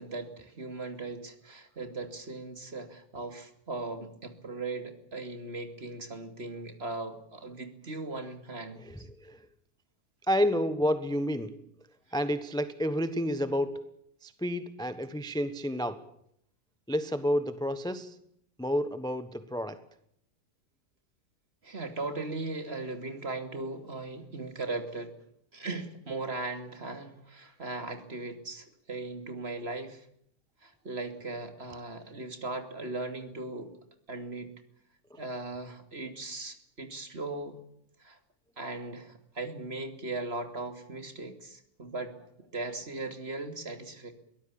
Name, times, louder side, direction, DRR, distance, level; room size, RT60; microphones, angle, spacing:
voice 1, 0.0-9.1 21.6-25.2 25.5-30.1 30.6-33.7 34.1-34.5 35.1-37.6 38.0-38.2 38.6-44.1, right 2 dB, 40° right, 2.9 m, -38 dB
voice 2, 8.9-9.4 10.3-11.6 12.1-13.8 14.2-16.1 16.9-18.1 18.6-19.8, equal, 5° left, 1.0 m, -30 dB
23.0 x 18.0 x 8.6 m
omnidirectional pair, 1.6 m